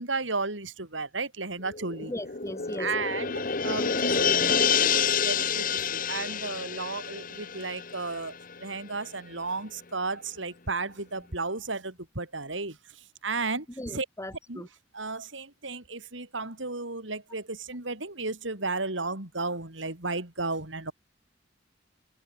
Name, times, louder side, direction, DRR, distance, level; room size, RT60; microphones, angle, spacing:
voice 1, 0.0-2.1 2.8-8.3 8.6-12.8 13.2-14.1 14.5-14.7 14.9-20.9, right 3 dB, 80° right, 4.1 m, -34 dB
sound 1, 1.7-8.6 9.0-9.1, left 6 dB, 45° left, 1.3 m, -28 dB
voice 2, 2.1-2.9 13.8-14.7, left 1 dB, 15° left, 2.5 m, -38 dB
open air
head